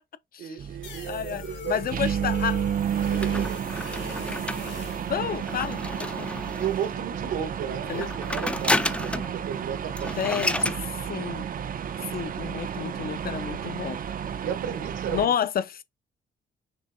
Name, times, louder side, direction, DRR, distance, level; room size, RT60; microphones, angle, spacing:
voice 1, 0.4-1.8 3.0-3.6 6.6-10.4 14.4-15.3, right 8 dB, 80° right, 1.3 m, -34 dB
sound 1, 0.6-15.3, right 8 dB, 45° right, 0.5 m, -31 dB
sound 2, 0.8-5.2, left 8 dB, 65° left, 2.5 m, -42 dB
voice 2, 1.1-2.6 5.1-6.3 7.9-8.1 10.2-10.7 11.1-11.5 12.1-14.0 15.1-15.8, left 8 dB, 50° left, 0.6 m, -30 dB
sound 3, 3.2-6.9 7.8-9.4 9.7-9.8 10.0-10.8, left 1 dB, 5° left, 0.4 m, -31 dB
6.1 x 3.2 x 2.7 m
cardioid pair, 90°, 20 cm